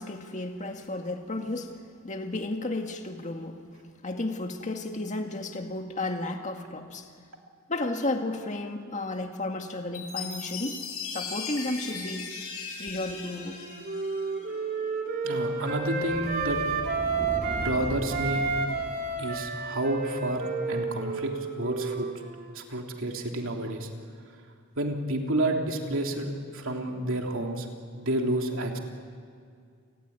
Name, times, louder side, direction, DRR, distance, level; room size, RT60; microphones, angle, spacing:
voice 1, 0.0-1.7 2.0-3.6 4.0-7.1 7.7-10.8 11.1-12.3 12.8-13.7, left 2 dB, 35° left, 4 dB, 2.0 m, -33 dB
Chime, 9.9-14.6, left 5 dB, 80° left, 6.6 m, -38 dB
Wind instrument woodwind instrument, 13.2-17.7 18.1-22.6, right 4 dB, 45° right, 3.6 m, -31 dB
sound 1, 14.3-19.9, equal, 15° left, 1.8 m, -40 dB
voice 2, 15.2-16.6 17.5-18.4 19.2-22.1 22.5-23.9 24.8-27.7 27.9-28.8, right 1 dB, 65° right, 2 dB, 3.2 m, -30 dB
29.5 x 19.0 x 9.6 m, 2.2 s
head